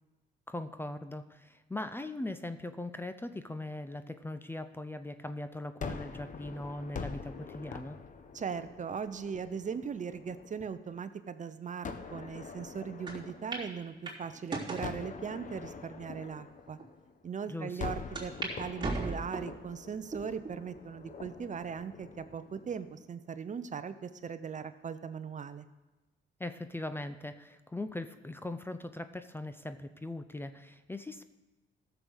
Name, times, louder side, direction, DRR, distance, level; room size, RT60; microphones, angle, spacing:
voice 1, 0.5-8.0 17.5-17.8 26.4-31.2, left 2 dB, 10° left, 10 dB, 0.6 m, -40 dB
Gunshot gunfire, 5.8-10.9 11.8-14.3 14.8-17.3 17.8-23.0, left 5 dB, 40° left, 1.0 m, -45 dB
voice 2, 8.3-16.8 17.2-25.7, right 6 dB, 40° right, 12 dB, 0.7 m, -39 dB
sound 1, 13.1-13.2 13.5-13.7 14.1-14.9 15.6-15.7 16.4-16.5 16.8-16.9 18.2-18.5 18.8-19.6 20.1-20.6 21.1-21.2 22.3-22.8, right 3 dB, 20° right, 3.3 m, -37 dB
14.0 x 7.0 x 6.3 m, 1.1 s
cardioid pair, 90°, 20 cm